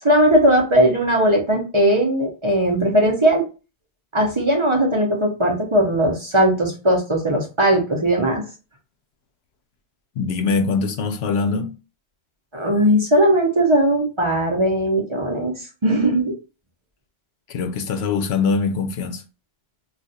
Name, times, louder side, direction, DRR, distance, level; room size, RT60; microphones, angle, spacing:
voice 1, 0.0-3.4 4.1-8.4 12.5-16.3, right 1 dB, 30° right, 0.7 m, -18 dB
voice 2, 10.2-11.7 17.5-19.2, left 4 dB, 80° left, 0.8 m, -22 dB
2.4 x 2.3 x 4.0 m
omnidirectional pair, 1.1 m